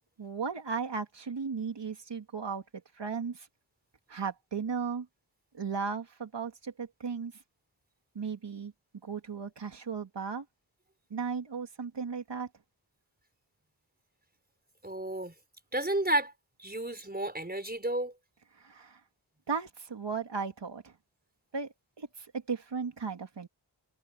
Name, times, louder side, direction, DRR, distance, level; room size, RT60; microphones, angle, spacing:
voice 1, 0.2-2.6 2.9-3.5 4.1-5.1 5.5-7.3 8.1-8.7 9.0-10.4 11.1-12.5 18.5-19.0 19.5-20.9 21.5-23.5, right 5 dB, 85° right, 2.5 m, -36 dB
voice 2, 14.8-15.3 15.7-16.3 16.6-18.1, right 1 dB, 20° right, 4.4 m, -31 dB
cardioid pair, 40°, 42 cm